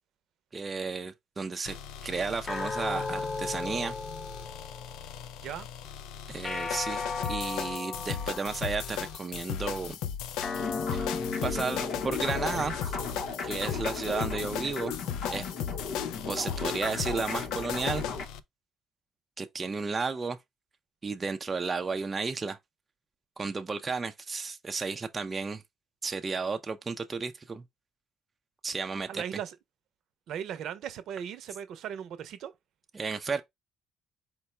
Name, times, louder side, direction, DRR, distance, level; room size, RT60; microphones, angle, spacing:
voice 1, 0.5-1.8 2.0-4.0 6.3-10.0 10.9-11.1 11.4-12.9 13.4-14.9 15.3-15.5 16.3-18.0 19.4-20.4 21.0-22.6 23.4-25.6 26.0-27.6 28.6-29.2 32.9-33.4, right 4 dB, 25° right, 0.4 m, -33 dB
sound 1, 1.6-18.4, left 9 dB, 90° left, 0.4 m, -37 dB
sound 2, 2.5-5.1 6.4-9.0 10.4-13.0, left 4 dB, 30° left, 0.4 m, -36 dB
sound 3, 10.6-18.3, left 5 dB, 70° left, 0.9 m, -36 dB
voice 2, 29.0-29.6 30.3-32.5, right 9 dB, 70° right, 0.6 m, -38 dB
4.5 x 2.1 x 4.2 m
cardioid pair, 100°, 0 cm